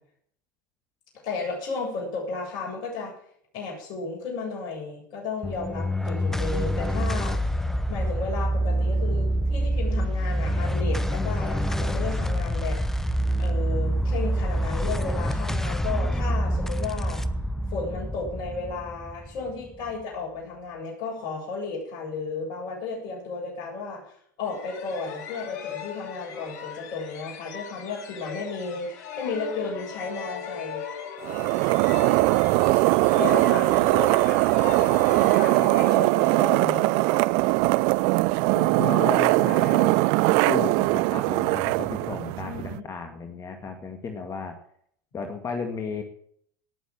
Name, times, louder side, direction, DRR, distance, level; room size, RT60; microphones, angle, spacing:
voice 1, 1.2-3.1 3.5-7.4 7.9-12.8 13.4-17.2 17.7-30.8 33.1-34.4 35.1-36.9 42.4-42.8, left 4 dB, 50° left, -1 dB, 7.7 m, -34 dB
sound 1, 5.4-20.0, equal, 5° left, 0.9 m, -26 dB
sound 2, 24.4-37.9, left 8 dB, 70° left, 3.0 m, -39 dB
sound 3, 31.2-42.8, right 24 dB, 60° right, 0.5 m, -21 dB
voice 2, 38.5-40.0 40.5-44.6 45.1-46.0, left 5 dB, 30° left, 5 dB, 2.1 m, -33 dB
18.0 x 7.2 x 7.5 m, 0.66 s
hypercardioid pair, 95°, 10 cm